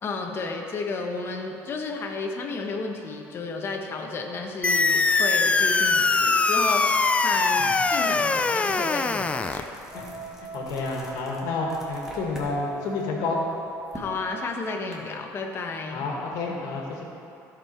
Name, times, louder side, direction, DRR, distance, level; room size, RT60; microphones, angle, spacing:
voice 1, 0.0-9.7 13.9-16.1, left 3 dB, 40° left, 2 dB, 1.1 m, -32 dB
sound 1, 4.6-9.6, left 3 dB, 20° left, 0.4 m, -22 dB
sound 2, 8.2-8.4 8.8-12.5 12.9-14.9, equal, 5° right, 1.9 m, -46 dB
Wind instrument woodwind instrument, 9.9-14.6, right 4 dB, 25° right, 2.5 m, -41 dB
voice 2, 10.5-13.4 15.9-17.0, left 3 dB, 70° left, -1 dB, 1.8 m, -29 dB
15.5 x 5.4 x 4.4 m, 2.9 s
cardioid pair, 115°, 6 cm